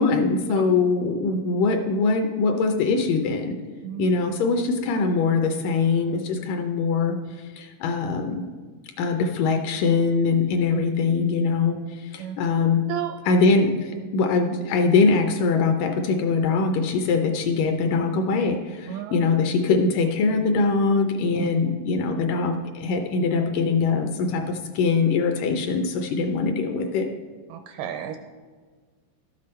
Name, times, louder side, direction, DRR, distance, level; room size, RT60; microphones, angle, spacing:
voice 1, 0.0-3.5 4.0-8.5 9.0-12.8 13.3-27.1, left 4 dB, 75° left, 4 dB, 2.1 m, -22 dB
voice 2, 18.9-19.3 21.4-21.5 27.5-28.2, right 11 dB, 85° right, 6 dB, 1.9 m, -31 dB
12.5 x 7.7 x 4.3 m, 1.5 s
omnidirectional pair, 4.2 m